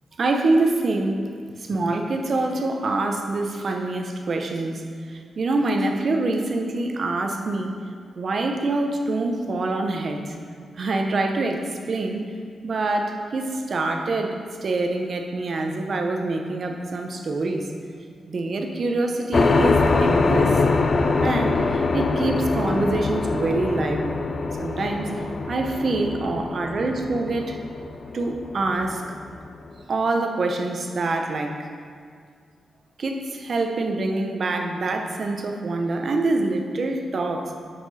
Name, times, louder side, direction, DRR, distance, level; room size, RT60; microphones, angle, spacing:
voice 1, 0.2-1.3 1.6-7.7 8.1-10.3 10.8-12.2 12.6-17.7 18.3-20.6 21.2-24.2 24.6-27.6 28.1-29.0 29.9-31.7 33.0-37.5, right 2 dB, 45° right, 4 dB, 0.8 m, -25 dB
sound 1, 19.3-29.5, left 3 dB, 35° left, 0.4 m, -23 dB
9.7 x 5.9 x 4.1 m, 2.1 s
wide cardioid pair, 140°, 0 cm